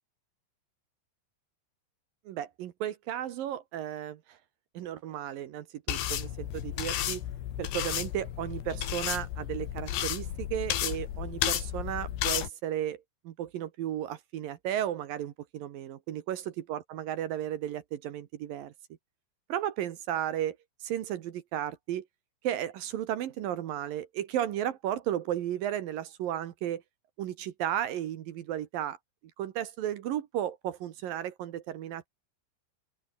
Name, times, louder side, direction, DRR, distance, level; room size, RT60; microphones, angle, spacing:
voice 1, 2.3-4.4 4.7-7.2 7.6-18.7 19.5-22.1 22.4-26.8 27.2-29.0 29.4-32.1, right 11 dB, 65° right, 2.3 m, -34 dB
sound 1, 5.9-12.5, left 11 dB, 65° left, 4.1 m, -33 dB
open air
omnidirectional pair, 5.5 m